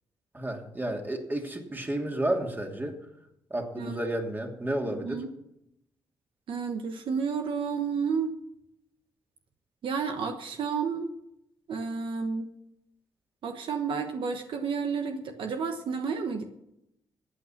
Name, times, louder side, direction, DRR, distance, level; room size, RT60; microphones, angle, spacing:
voice 1, 0.3-3.0 3.5-5.2, right 1 dB, 20° right, 2 dB, 2.8 m, -31 dB
voice 2, 4.9-5.3 6.5-8.3 9.8-11.1 11.7-12.5 13.4-16.4, right 5 dB, 70° right, 6 dB, 1.2 m, -31 dB
14.5 x 8.8 x 5.9 m, 0.81 s
cardioid pair, 65°, 9 cm